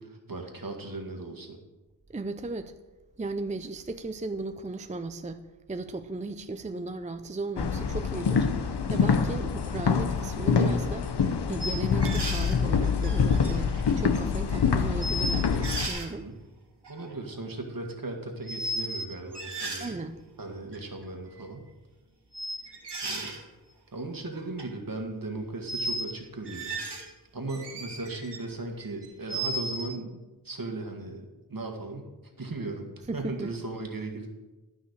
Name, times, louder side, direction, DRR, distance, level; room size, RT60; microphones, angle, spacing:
voice 1, 0.0-1.6 16.2-16.4 16.9-20.0 20.4-21.7 23.0-23.3 23.9-26.8 27.3-34.3, right 2 dB, 55° right, 3 dB, 1.8 m, -37 dB
voice 2, 2.1-2.7 3.2-5.4 5.7-11.1 11.5-16.3 19.8-20.2 33.1-33.5, right 3 dB, 20° right, 9 dB, 0.4 m, -36 dB
sound 1, 7.6-15.9, left 6 dB, 75° left, 0.8 m, -26 dB
sound 2, 11.6-12.6 13.0-14.0 14.5-14.6 15.0-16.1 16.8-17.2 18.5-19.1 19.3-19.9 20.7-20.8 22.3-23.4 24.3-24.7 25.7-26.1 26.5-27.1 27.5-28.4 28.8-29.9, right 1 dB, 80° right, 1.9 m, -34 dB
12.5 x 5.7 x 6.6 m, 1.2 s
wide cardioid pair, 80°, 41 cm